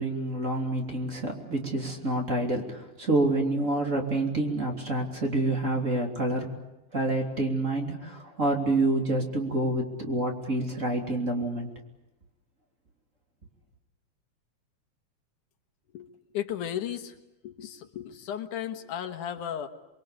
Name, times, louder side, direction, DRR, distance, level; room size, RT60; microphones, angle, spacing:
voice 1, 0.0-6.5 6.9-11.7, right 2 dB, 25° right, 1 dB, 3.4 m, -28 dB
voice 2, 16.3-17.2 17.4-19.7, left 10 dB, 90° left, 7 dB, 3.0 m, -34 dB
29.0 x 22.5 x 8.6 m, 0.95 s
omnidirectional pair, 3.5 m